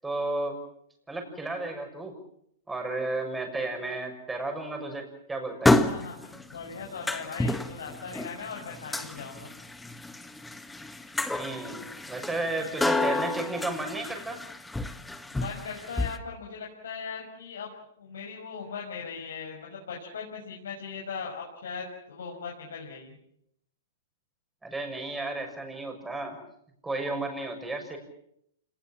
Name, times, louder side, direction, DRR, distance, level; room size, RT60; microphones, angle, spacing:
voice 1, 0.0-0.6 1.1-2.2 2.7-5.7 11.3-11.8 12.1-14.4 24.6-26.4 26.8-28.0, right 2 dB, 10° right, 4 dB, 6.6 m, -33 dB
sound 1, 5.6-16.2, left 2 dB, 5° left, 1.6 m, -30 dB
voice 2, 5.7-9.5 15.3-23.1, left 5 dB, 85° left, -2 dB, 6.2 m, -39 dB
27.5 x 20.0 x 7.5 m, 0.74 s
hypercardioid pair, 130°, 0 cm